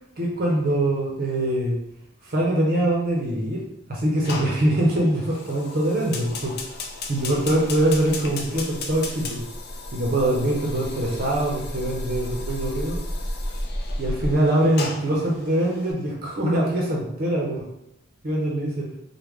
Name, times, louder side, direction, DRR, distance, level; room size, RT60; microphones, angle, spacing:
voice 1, 0.2-1.8 2.2-3.6 3.9-6.8 7.1-9.4 9.9-13.0 14.0-17.6 18.2-18.9, right 1 dB, 45° right, -2 dB, 0.6 m, -23 dB
Fire, 4.2-15.9, left 4 dB, 50° left, 0.4 m, -37 dB
sound 1, 6.8-14.3, equal, ahead, 0.7 m, -33 dB
3.1 x 2.1 x 3.5 m, 0.77 s
head